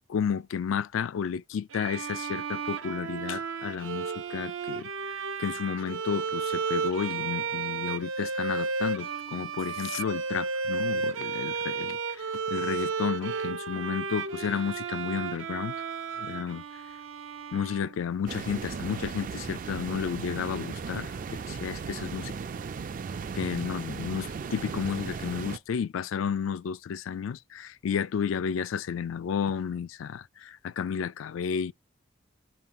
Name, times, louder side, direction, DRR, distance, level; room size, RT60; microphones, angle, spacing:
voice 1, 0.1-15.7 16.2-16.6 17.5-22.3 23.3-31.7, left 7 dB, 85° left, 0.3 m, -32 dB
Bowed string instrument, 1.7-18.3, right 5 dB, 90° right, 0.6 m, -33 dB
sound 1, 18.3-25.6, right 5 dB, 45° right, 0.3 m, -36 dB
7.6 x 2.8 x 5.5 m
head